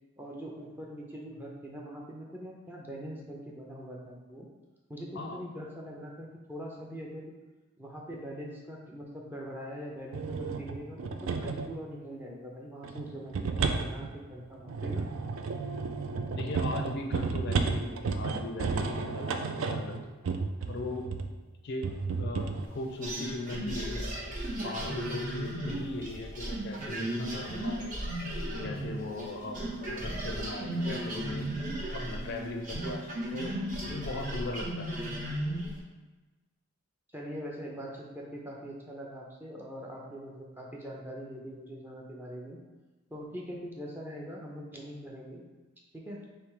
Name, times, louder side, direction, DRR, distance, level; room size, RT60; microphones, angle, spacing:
voice 1, 0.2-4.5 4.9-7.3 7.8-15.1 37.1-42.6 43.1-45.4 45.9-46.2, equal, 10° right, -2 dB, 0.5 m, -42 dB
sound 1, 10.1-11.7 12.8-21.3 21.8-22.7, right 4 dB, 60° right, 0.3 m, -32 dB
voice 2, 16.3-20.2 20.7-21.1 21.6-24.2 24.6-28.0 28.6-31.5 31.9-34.9, left 2 dB, 50° left, 3 dB, 0.4 m, -39 dB
sound 2, 23.0-29.3 29.5-35.8, right 1 dB, 35° right, 0.9 m, -35 dB
sound 3, 24.1-34.7, right 2 dB, 80° right, 1.0 m, -47 dB
3.4 x 3.1 x 4.8 m, 1.2 s
head